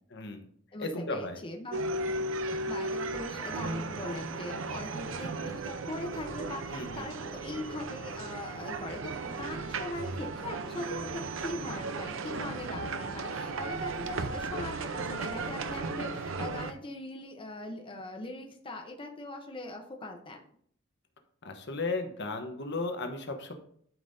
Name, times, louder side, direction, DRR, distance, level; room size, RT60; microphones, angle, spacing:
voice 1, 0.1-0.5 0.8-1.4 6.7-7.1 21.4-23.5, left 3 dB, 60° left, 5 dB, 1.1 m, -35 dB
voice 2, 0.7-1.8 2.4-20.4, left 2 dB, 25° left, 2 dB, 0.9 m, -41 dB
sound 1, 1.7-16.7, right 3 dB, 75° right, 0.7 m, -35 dB
12.0 x 5.5 x 2.7 m, 0.63 s
head